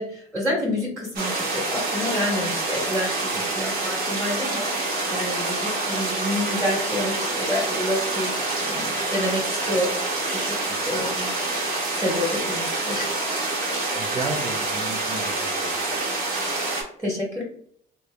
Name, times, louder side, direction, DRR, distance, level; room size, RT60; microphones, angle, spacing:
voice 1, 0.0-4.7 5.1-10.0 10.3-10.5 10.8-13.1 16.7-17.4, left 1 dB, 10° right, -6 dB, 1.4 m, -29 dB
sound 1, 1.1-16.8, right 2 dB, 65° right, 1.5 m, -27 dB
voice 2, 10.7-11.0 13.9-15.7, right 3 dB, 40° right, -1 dB, 0.7 m, -34 dB
3.2 x 2.7 x 3.3 m, 0.63 s
cardioid pair, 110°, 17 cm